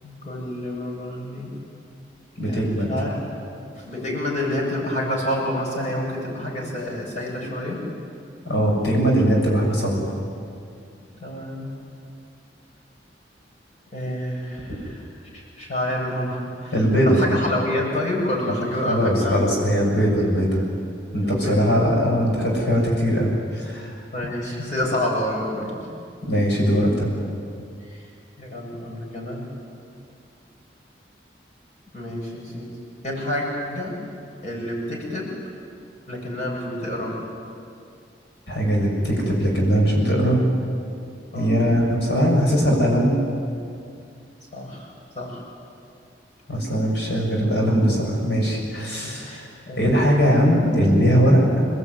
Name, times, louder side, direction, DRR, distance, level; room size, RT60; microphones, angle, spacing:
voice 1, 0.0-1.6 2.4-3.2 3.8-7.9 11.2-11.7 13.9-15.1 15.3-16.7 17.0-19.5 21.2-21.8 24.1-25.8 27.8-28.0 28.4-29.4 31.9-32.8 33.0-34.0 34.4-35.4 36.1-37.2 41.3-41.6 44.5-45.4 49.0-50.3, left 1 dB, 40° left, -3 dB, 7.9 m, -28 dB
voice 2, 2.4-2.9 8.5-10.1 16.7-17.2 18.5-18.6 18.9-20.6 21.1-23.9 26.3-27.1 38.5-40.4 41.3-43.2 46.5-49.5 49.8-51.7, equal, 70° left, -1 dB, 6.9 m, -20 dB
28.0 x 20.0 x 9.7 m, 2.4 s
head